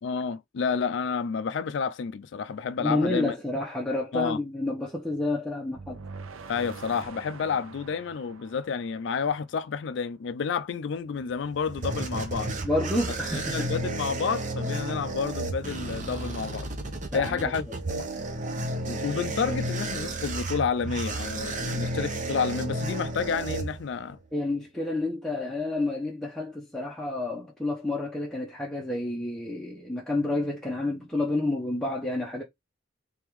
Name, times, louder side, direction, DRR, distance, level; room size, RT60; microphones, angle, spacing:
voice 1, 0.0-3.3 4.1-4.4 6.5-12.5 13.3-16.7 17.1-17.7 18.8-24.2, left 6 dB, 60° left, 0.4 m, -30 dB
voice 2, 2.8-6.0 12.6-13.7 17.1-17.8 24.3-32.4, left 2 dB, ahead, 0.8 m, -29 dB
sound 1, 5.7-9.8, right 4 dB, 90° right, 0.6 m, -45 dB
sound 2, 11.2-24.2, right 2 dB, 40° right, 0.8 m, -32 dB
3.6 x 3.5 x 3.0 m
head